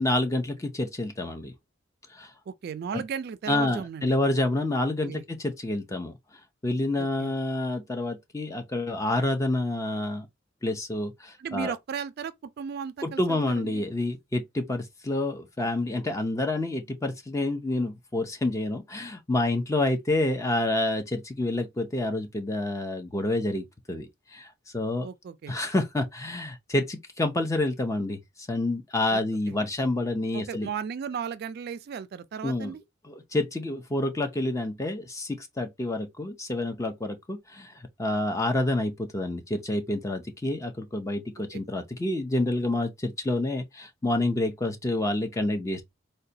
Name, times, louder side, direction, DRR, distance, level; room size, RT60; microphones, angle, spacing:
voice 1, 0.0-1.5 2.1-2.3 2.9-3.0 3.5-6.2 6.6-10.3 10.6-11.7 13.0-24.5 24.7-25.1 25.5-28.2 28.5-30.7 32.4-32.7 33.1-37.7 38.0-45.8, left 2 dB, 15° left, 0.5 m, -28 dB
voice 2, 2.5-4.1 5.0-5.2 7.0-7.3 11.4-13.9 25.0-25.5 29.1-29.2 29.5-29.6 30.3-32.8 41.5-41.6, right 7 dB, 55° right, 0.3 m, -35 dB
3.8 x 2.2 x 2.6 m
head